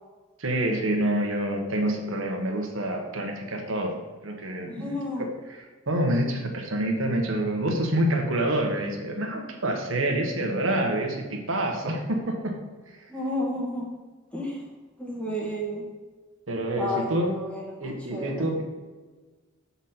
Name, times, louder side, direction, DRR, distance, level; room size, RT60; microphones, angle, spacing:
voice 1, 0.4-3.9 4.2-5.0 5.5-12.6 16.5-17.3 17.8-18.6, right 1 dB, 70° right, 2 dB, 1.3 m, -27 dB
voice 2, 4.7-5.2 13.1-13.9 14.3-14.6 15.0-15.8 16.8-18.5, left 1 dB, 5° left, -3 dB, 1.5 m, -32 dB
7.1 x 4.2 x 5.9 m, 1.3 s
head